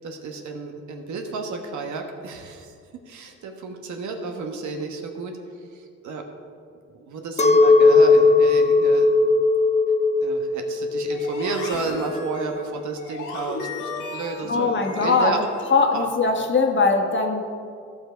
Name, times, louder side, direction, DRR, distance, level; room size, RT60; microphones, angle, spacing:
voice 1, 0.0-2.7 3.1-5.3 5.7-6.3 6.9-9.1 10.2-15.4 15.9-16.1, right 4 dB, 75° right, 3 dB, 1.4 m, -32 dB
Chink clink, 7.4-12.8, left 3 dB, 20° left, 0.6 m, -18 dB
sound 1, 11.1-16.0, left 4 dB, 85° left, 1.8 m, -36 dB
voice 2, 14.5-15.3 15.7-17.4, left 4 dB, 40° left, 3 dB, 1.4 m, -20 dB
14.5 x 5.6 x 5.1 m, 2.3 s
cardioid pair, 90°, 30 cm